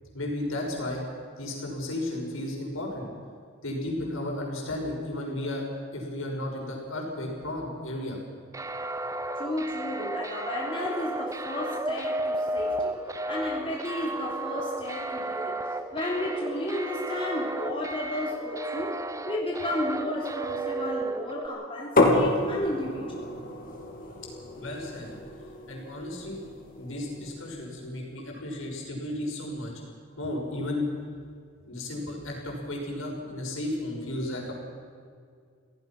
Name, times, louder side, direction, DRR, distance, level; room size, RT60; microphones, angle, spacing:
voice 1, 0.1-1.0 1.4-3.1 3.6-5.6 5.9-8.2 24.6-25.1 25.7-26.4 26.8-29.7 30.2-30.9 31.7-34.5, left 1 dB, 75° left, 0 dB, 6.1 m, -33 dB
sound 1, 8.5-21.5, right 2 dB, 15° right, 0.7 m, -33 dB
voice 2, 9.4-13.0 13.3-15.6 15.9-23.3, left 1 dB, 25° left, -3 dB, 3.3 m, -33 dB
sound 2, 22.0-27.6, left 2 dB, 45° left, 3.5 m, -29 dB
26.5 x 17.0 x 6.0 m, 2.2 s
head